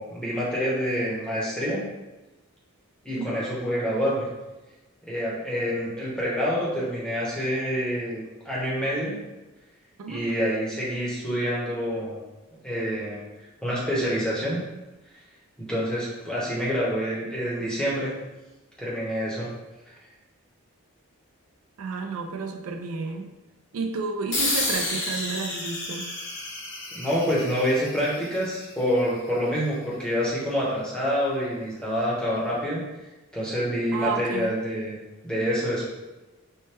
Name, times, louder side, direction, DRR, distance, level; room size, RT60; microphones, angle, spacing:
voice 1, 0.0-1.8 3.0-4.3 5.1-9.2 10.1-12.2 12.6-13.2 13.6-14.6 15.6-18.1 18.8-19.5 26.9-32.8 33.3-34.9 35.2-35.9, equal, 5° left, -7 dB, 0.8 m, -27 dB
voice 2, 21.8-23.3 23.7-26.0 33.9-34.5, right 4 dB, 75° right, 4 dB, 0.4 m, -31 dB
sound 1, 24.3-29.3, left 2 dB, 60° left, 1.0 m, -31 dB
4.3 x 2.1 x 3.3 m, 1.1 s
head